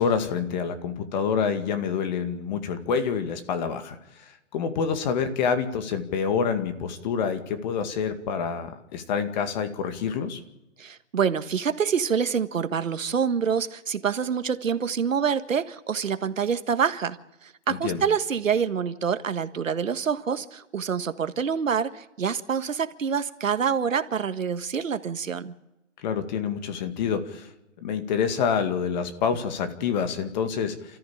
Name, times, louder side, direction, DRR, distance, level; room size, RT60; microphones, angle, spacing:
voice 1, 0.0-4.0 4.5-10.4 17.7-18.0 26.0-27.5 27.8-31.0, left 6 dB, 35° left, 2.2 m, -27 dB
voice 2, 10.8-17.2 17.4-25.5, right 7 dB, 85° right, 1.6 m, -26 dB
29.0 x 14.0 x 8.8 m
hypercardioid pair, 155°, 38 cm